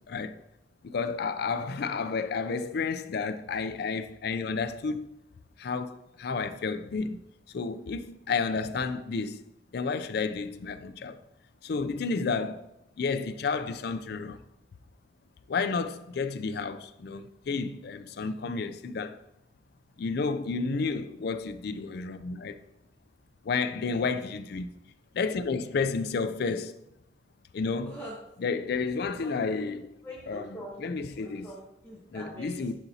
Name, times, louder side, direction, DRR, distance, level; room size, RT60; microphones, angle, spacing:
voice 1, 0.8-5.1 5.6-7.2 7.5-9.4 9.7-11.2 11.6-12.6 13.0-14.4 15.5-19.2 20.0-22.6 23.5-24.7 25.1-26.7 27.5-27.9 28.4-29.8 30.3-30.4 30.8-31.5 32.1-32.7, left 4 dB, 55° left, 0.4 m, -31 dB
voice 2, 27.8-28.2 29.2-29.7 30.0-32.7, equal, 10° left, 1.0 m, -44 dB
11.0 x 4.0 x 2.8 m
head